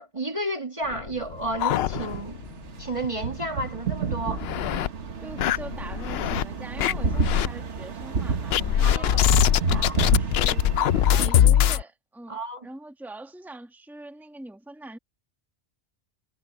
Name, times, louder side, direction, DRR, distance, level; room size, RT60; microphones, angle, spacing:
voice 1, 0.0-2.4 2.8-4.5 8.8-9.2 9.7-10.0 11.1-11.3 11.6-11.8 12.3-12.7, right 2 dB, 30° right, 1.6 m, -32 dB
sound 1, 0.9-2.5 2.8-2.9 3.3-3.4 4.0-4.9 5.4-6.4 6.8-7.5 8.5-11.8, left 10 dB, 70° left, 0.8 m, -22 dB
sound 2, 1.2-11.3, right 5 dB, 85° right, 1.6 m, -31 dB
voice 2, 5.2-10.6 11.1-15.0, right 2 dB, ahead, 1.5 m, -43 dB
omnidirectional pair, 1.2 m